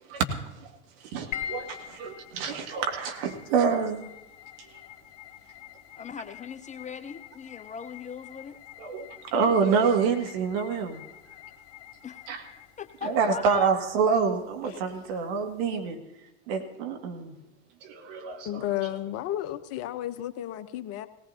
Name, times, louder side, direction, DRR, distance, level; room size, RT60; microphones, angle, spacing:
voice 1, 1.0-4.1 4.7-4.8 8.8-11.0 12.3-12.4 13.0-16.0 16.5-17.3 17.8-18.6, right 5 dB, 60° right, 3 dB, 2.1 m, -27 dB
sound 1, 1.3-15.8, left 10 dB, 60° left, 1.9 m, -46 dB
voice 2, 6.0-8.6 12.0-12.2 12.8-13.7, left 6 dB, 20° left, 11 dB, 0.6 m, -39 dB
voice 3, 18.4-21.1, left 13 dB, 45° left, 11 dB, 0.9 m, -32 dB
18.0 x 18.0 x 2.8 m, 0.90 s
hypercardioid pair, 80°, 33 cm